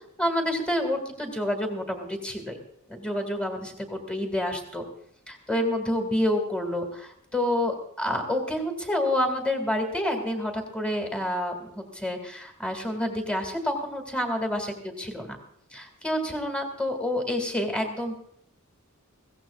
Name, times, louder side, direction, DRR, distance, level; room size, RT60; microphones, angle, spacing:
voice 1, 0.2-2.6 2.9-4.8 5.3-14.7 15.0-15.4 15.7-18.2, left 1 dB, 5° left, 4 dB, 2.3 m, -28 dB
22.5 x 16.5 x 2.5 m, 0.69 s
head